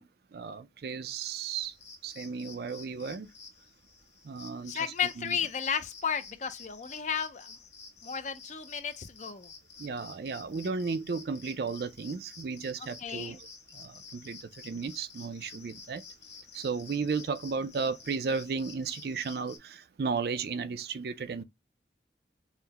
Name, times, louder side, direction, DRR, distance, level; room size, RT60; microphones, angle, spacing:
voice 1, 0.0-1.8 2.0-3.3 4.2-5.4 9.8-16.0 16.5-21.4, right 5 dB, 60° right, 0.4 m, -34 dB
sound 1, 1.6-19.6, left 5 dB, 85° left, 1.7 m, -51 dB
voice 2, 4.6-7.6 8.0-9.5 13.0-13.4, left 7 dB, 40° left, 0.5 m, -33 dB
5.6 x 2.1 x 2.8 m
head